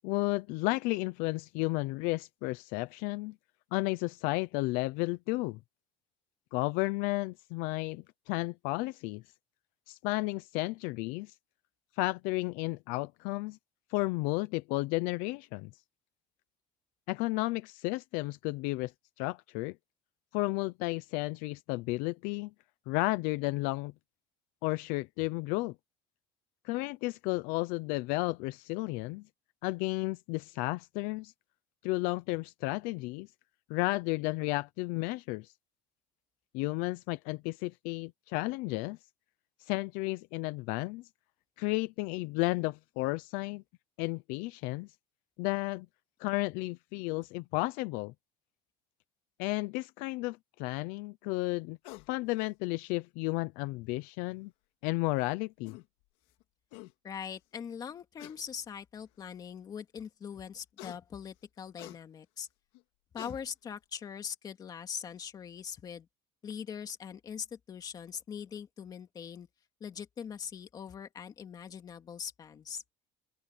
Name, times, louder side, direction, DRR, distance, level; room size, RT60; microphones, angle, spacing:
voice 1, 0.0-3.3 3.7-5.6 6.5-9.2 9.9-11.3 12.0-13.6 13.9-15.7 17.1-18.9 19.2-19.7 20.3-22.5 22.9-23.9 24.6-25.7 26.6-29.2 29.6-31.3 31.8-33.3 33.7-35.5 36.5-39.0 39.7-41.0 41.6-43.6 44.0-44.9 45.4-45.9 46.2-48.1 49.4-51.8 52.1-54.5 54.8-55.8, left 22 dB, 70° left, 0.8 m, -33 dB
sound 1, 51.8-52.1 53.6-53.7 55.2-55.3 55.6-55.9 56.4-56.5 56.7-56.9 58.2-58.4 59.2-59.3 60.8-61.0 61.8-62.0 62.7-62.8 63.2-63.4, left 21 dB, 90° left, 2.6 m, -47 dB
voice 2, 57.0-62.5 63.1-66.1 66.4-69.5 69.8-72.8, left 7 dB, 25° left, 2.4 m, -42 dB
open air
cardioid pair, 175°, 15 cm